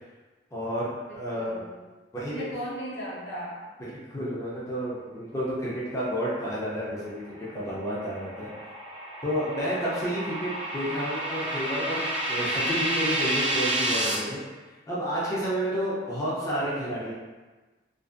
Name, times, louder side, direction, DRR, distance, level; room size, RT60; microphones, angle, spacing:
voice 1, 0.5-1.6 2.1-2.4 3.8-8.5 9.2-14.4 14.9-17.1, equal, 20° left, -7 dB, 0.5 m, -31 dB
voice 2, 1.1-1.8 2.2-3.7, equal, 75° left, -6 dB, 0.8 m, -37 dB
sound 1, 7.3-14.1, right 1 dB, 30° right, 0.6 m, -30 dB
2.5 x 2.5 x 2.5 m, 1.2 s
head